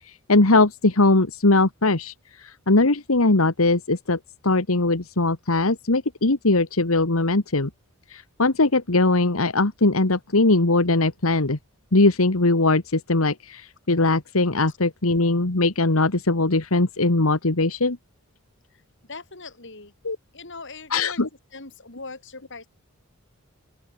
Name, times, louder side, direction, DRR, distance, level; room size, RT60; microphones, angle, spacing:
voice 1, 0.1-7.7 8.1-11.6 11.9-18.0 20.0-20.2 20.9-21.3, left 2 dB, 85° left, 1.8 m, -20 dB
voice 2, 19.1-19.9 20.3-21.2 21.5-22.7, left 3 dB, 60° left, 4.7 m, -40 dB
open air
head